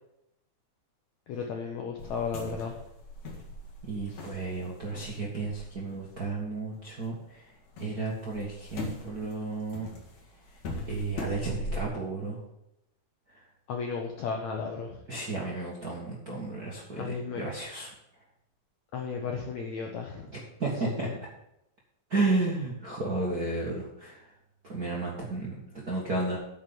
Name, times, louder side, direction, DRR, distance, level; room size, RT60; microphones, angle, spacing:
voice 1, 1.3-2.8 13.7-14.9 16.9-17.4 18.9-20.3 21.0-21.1, left 5 dB, 75° left, 2 dB, 1.7 m, -34 dB
sound 1, 2.0-7.1 7.4-11.8, left 2 dB, 50° left, 2.9 m, -41 dB
voice 2, 3.8-7.5 7.8-9.9 10.9-12.4 13.3-13.4 15.1-17.9 20.3-21.1 22.1-24.3 24.6-26.4, right 3 dB, 45° right, -4 dB, 1.2 m, -33 dB
9.0 x 5.7 x 7.7 m, 0.83 s
omnidirectional pair, 4.4 m